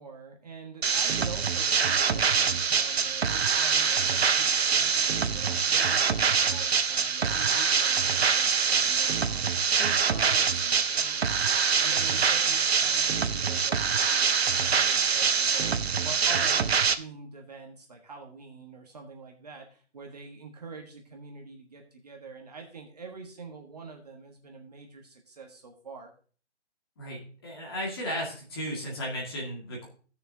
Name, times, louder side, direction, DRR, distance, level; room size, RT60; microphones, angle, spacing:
voice 1, 0.0-14.3 14.6-16.7 17.0-26.1, right 4 dB, 35° right, 1 dB, 1.4 m, -45 dB
sound 1, 0.8-16.9, right 6 dB, 60° right, 0.8 m, -25 dB
voice 2, 27.0-29.9, equal, 20° left, -3 dB, 1.9 m, -35 dB
16.5 x 6.7 x 2.7 m, 0.42 s
hypercardioid pair, 175°, 35 cm